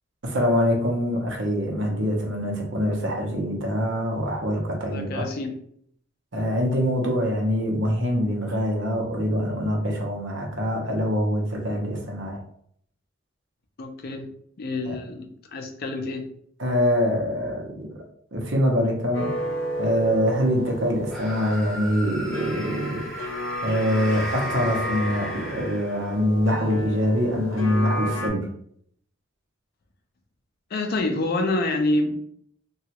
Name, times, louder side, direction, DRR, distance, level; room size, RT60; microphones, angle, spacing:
voice 1, 0.2-5.3 6.3-12.4 14.8-15.0 16.6-18.0 18.3-19.3 19.8-23.1 23.6-28.5, equal, 65° right, 1 dB, 0.7 m, -24 dB
voice 2, 4.9-5.5 13.8-14.3 14.6-16.2 30.7-32.1, left 2 dB, 50° left, 5 dB, 0.4 m, -27 dB
sound 1, 19.1-28.3, left 1 dB, 80° left, 0.7 m, -32 dB
sound 2, 21.1-26.3, equal, ahead, 0.6 m, -36 dB
2.9 x 2.3 x 2.8 m, 0.66 s
head